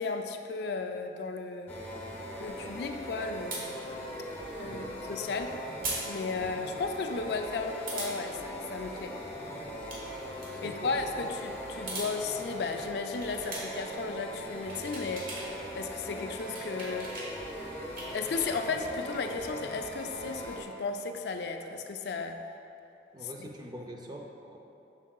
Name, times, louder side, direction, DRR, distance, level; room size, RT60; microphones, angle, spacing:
voice 1, 0.0-1.8 2.4-3.8 4.6-5.6 6.1-9.2 10.6-15.3 15.7-17.2 18.1-22.4 23.4-23.5, left 4 dB, 65° left, 5 dB, 0.4 m, -35 dB
sound 1, 1.7-20.6, equal, 15° left, 0.8 m, -40 dB
sound 2, 3.5-3.7 5.8-6.0 6.4-6.5 7.9-8.1 9.7-10.0 10.3-10.5 11.7-12.1 13.1-13.9 14.4-15.5 15.8-17.3 17.7-19.2, right 2 dB, 50° right, 1.3 m, -39 dB
voice 2, 4.7-5.1 6.3-6.6 10.5-11.4 23.1-24.6, right 1 dB, 25° right, 2 dB, 0.4 m, -45 dB
7.3 x 6.2 x 2.3 m, 2.8 s
head